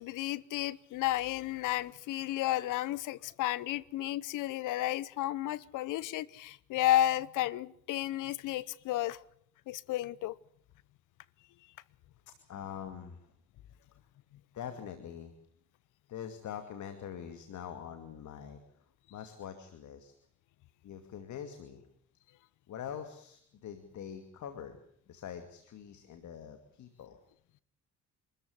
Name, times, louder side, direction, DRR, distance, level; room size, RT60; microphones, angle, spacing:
voice 1, 0.0-9.2 9.7-10.4, left 14 dB, 90° left, 21 dB, 0.9 m, -32 dB
voice 2, 12.3-13.2 14.5-15.3 16.1-18.6 19.1-20.1 20.8-21.9 22.7-24.8 25.1-27.2, left 8 dB, 70° left, 8 dB, 2.6 m, -44 dB
26.5 x 14.0 x 9.7 m, 0.67 s
cardioid pair, 90°, 30 cm